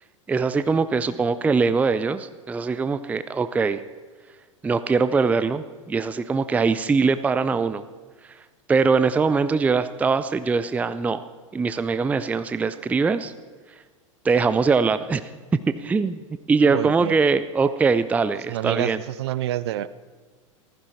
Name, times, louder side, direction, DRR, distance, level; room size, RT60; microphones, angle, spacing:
voice 1, 0.3-3.8 4.6-7.8 8.7-11.2 11.5-13.3 14.2-15.2 15.7-16.2 16.5-19.0, right 4 dB, 10° right, 13 dB, 0.4 m, -22 dB
voice 2, 16.6-17.2 18.5-19.9, right 13 dB, 50° right, 16 dB, 0.6 m, -28 dB
15.0 x 14.5 x 4.2 m, 1.5 s
figure-of-eight pair, 90°, 17 cm